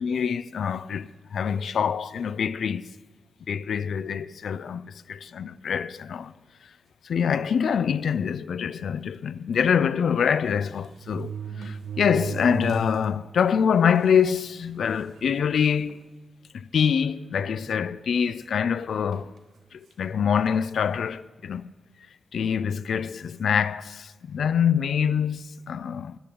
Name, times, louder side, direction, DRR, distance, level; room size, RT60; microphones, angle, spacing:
voice 1, 0.0-2.9 3.5-6.3 7.0-16.0 16.5-19.3 19.7-21.7 22.3-26.2, left 7 dB, 75° left, 0.3 m, -25 dB
sound 1, 7.2-7.5 8.2-8.3 8.6-8.7 10.0-10.1 10.8-13.1 13.5-13.6 14.4-14.5 14.9-15.3 15.9-16.0 17.3-18.1 19.1-19.4, right 6 dB, 80° right, 0.7 m, -36 dB
14.5 x 9.8 x 3.8 m
wide cardioid pair, 150°, 0 cm